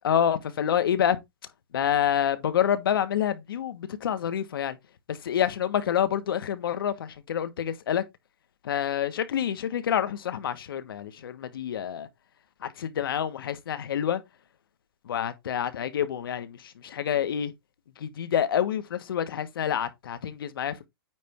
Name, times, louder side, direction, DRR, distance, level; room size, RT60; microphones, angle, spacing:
voice 1, 0.0-1.2 1.7-4.8 5.1-8.0 8.6-12.1 12.6-14.2 15.0-17.5 18.0-20.8, left 9 dB, 75° left, 1.4 m, -27 dB
9.3 x 3.4 x 4.5 m
hypercardioid pair, 165°, 12 cm